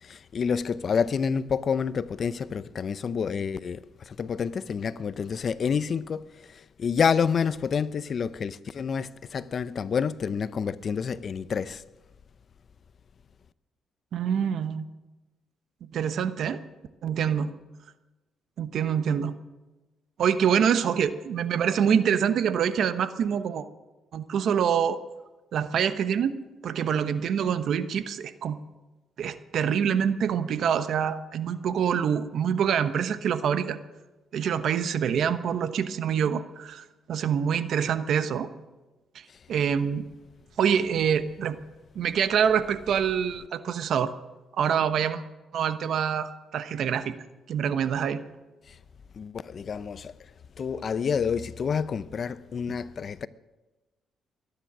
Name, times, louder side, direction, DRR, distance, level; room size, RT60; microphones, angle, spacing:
voice 1, 0.0-11.8 48.7-48.8 49.1-50.1 50.6-53.3, left 6 dB, 50° left, 0.6 m, -28 dB
voice 2, 14.1-14.8 15.8-16.6 17.0-17.5 18.6-19.3 20.2-23.6 24.1-25.0 25.5-28.6 29.2-33.8 34.3-38.5 39.1-40.0 40.6-41.6 41.9-44.1 44.6-45.2 45.5-47.1 47.5-48.2 52.7-52.8, right 8 dB, 70° right, 1.0 m, -26 dB
22.5 x 10.0 x 6.1 m
cardioid pair, 90°, 0 cm